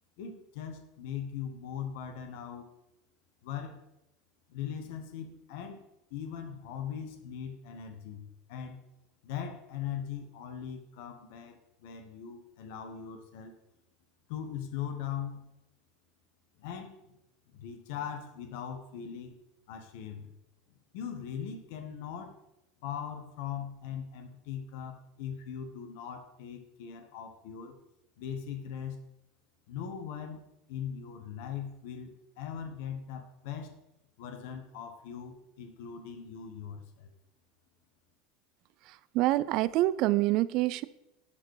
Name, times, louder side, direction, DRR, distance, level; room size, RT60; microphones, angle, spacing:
voice 1, 0.2-2.7 3.4-3.8 4.5-5.8 6.1-8.8 9.2-13.5 14.3-15.5 16.6-17.2 17.5-19.3 19.7-20.3 20.9-22.4 22.8-27.8 28.2-29.0 29.7-33.8 34.2-37.1, left 8 dB, 70° left, 5 dB, 1.2 m, -40 dB
voice 2, 38.8-40.8, right 16 dB, 55° right, 17 dB, 0.4 m, -27 dB
11.0 x 4.4 x 4.9 m, 0.88 s
hypercardioid pair, 95°, 0 cm